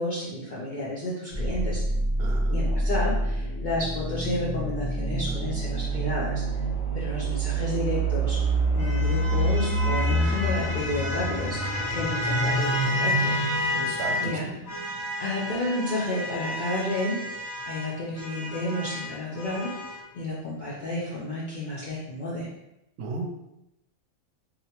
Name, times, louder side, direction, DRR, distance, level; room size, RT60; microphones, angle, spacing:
voice 1, 0.0-1.8 2.5-6.4 6.9-8.4 8.7-13.3 14.2-14.5 15.2-17.3 17.6-19.7 20.1-22.5, left 1 dB, 80° left, -7 dB, 0.4 m, -31 dB
sound 1, 1.3-15.1, right 2 dB, 55° left, 1.3 m, -27 dB
voice 2, 2.2-2.6 13.7-14.4 23.0-23.3, right 3 dB, 75° right, 1 dB, 1.0 m, -34 dB
sound 2, 7.7-14.3 14.7-20.0, left 1 dB, 30° left, 0.9 m, -32 dB
2.8 x 2.0 x 2.8 m, 0.87 s
omnidirectional pair, 1.4 m